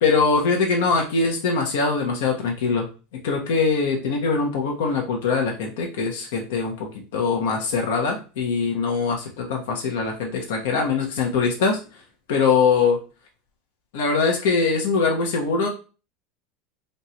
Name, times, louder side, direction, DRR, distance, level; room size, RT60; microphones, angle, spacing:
voice 1, 0.0-2.9 3.2-11.8 12.3-13.0 13.9-15.7, left 4 dB, 80° left, 0 dB, 1.1 m, -22 dB
3.3 x 2.7 x 4.3 m, 0.34 s
supercardioid pair, 180°, 0 cm